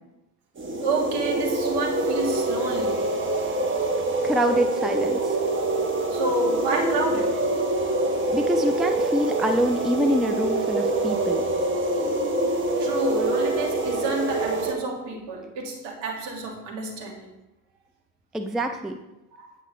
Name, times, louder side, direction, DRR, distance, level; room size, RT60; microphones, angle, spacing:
sound 1, 0.6-14.7, right 2 dB, 25° right, 1.2 m, -25 dB
voice 1, 0.8-3.1 5.2-5.3 6.1-7.5 12.8-17.3 19.3-19.6, right 3 dB, 60° right, 1 dB, 1.9 m, -29 dB
voice 2, 4.2-5.4 8.3-11.4 18.3-18.9, equal, ahead, 6 dB, 0.5 m, -25 dB
8.3 x 5.9 x 3.3 m, 0.96 s
hypercardioid pair, 65°, 46 cm